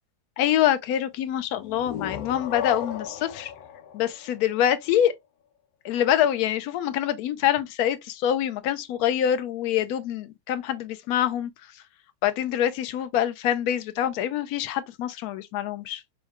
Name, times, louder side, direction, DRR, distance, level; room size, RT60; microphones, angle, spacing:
voice 1, 0.4-3.5 3.9-5.1 5.8-11.5 12.2-16.0, left 10 dB, 70° left, 0.9 m, -25 dB
sound 1, 1.5-5.1, left 8 dB, 85° left, 1.3 m, -36 dB
5.6 x 2.2 x 2.9 m
omnidirectional pair, 2.0 m